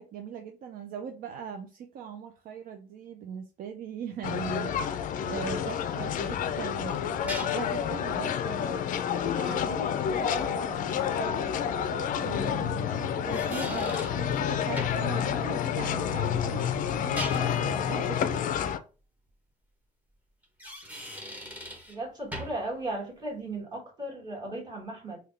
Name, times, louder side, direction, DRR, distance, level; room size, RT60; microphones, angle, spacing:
voice 1, 0.0-11.5 12.2-18.4, right 7 dB, 60° right, 0.4 m, -40 dB
sound 1, 4.2-18.8, left 8 dB, 50° left, 0.4 m, -29 dB
sound 2, 6.5-7.8 11.0-11.1 13.0-14.2 14.8-15.1 16.9-17.7 20.4-22.0 22.3-22.7, equal, 10° right, 1.0 m, -40 dB
voice 2, 21.9-25.2, right 1 dB, 25° right, 1.7 m, -36 dB
3.5 x 2.2 x 3.3 m
cardioid pair, 110°, 17 cm